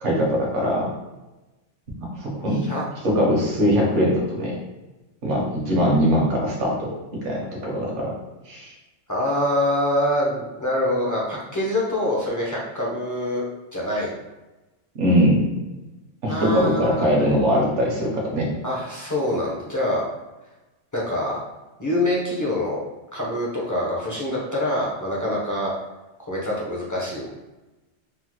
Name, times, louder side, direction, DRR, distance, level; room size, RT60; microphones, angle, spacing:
voice 1, 0.0-0.9 2.2-2.6 3.0-4.6 5.2-6.9 7.2-8.1 8.5-8.7 14.9-15.5 16.2-18.5, equal, 70° right, -2 dB, 1.1 m, -21 dB
voice 2, 9.1-13.4 13.7-14.1 16.3-17.3 18.6-20.0 20.9-21.4 21.8-22.8 23.1-25.7 26.2-27.3, left 1 dB, 25° left, -5 dB, 0.4 m, -25 dB
3.6 x 2.0 x 3.0 m, 1.1 s
omnidirectional pair, 1.3 m